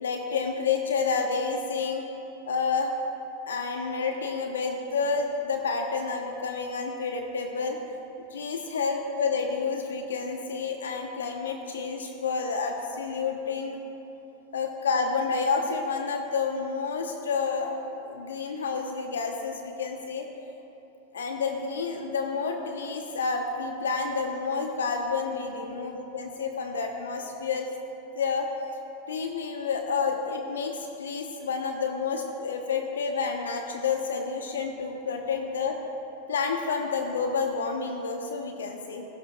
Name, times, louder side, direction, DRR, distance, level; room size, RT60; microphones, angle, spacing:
voice 1, 0.0-2.0 2.5-2.9 3.5-7.8 8.3-13.8 14.5-20.3 21.1-27.7 28.2-28.5 29.1-35.8 36.3-39.1, left 5 dB, 80° left, 3 dB, 0.9 m, -29 dB
17.0 x 15.5 x 2.3 m, 3.0 s
hypercardioid pair, 95°, 0 cm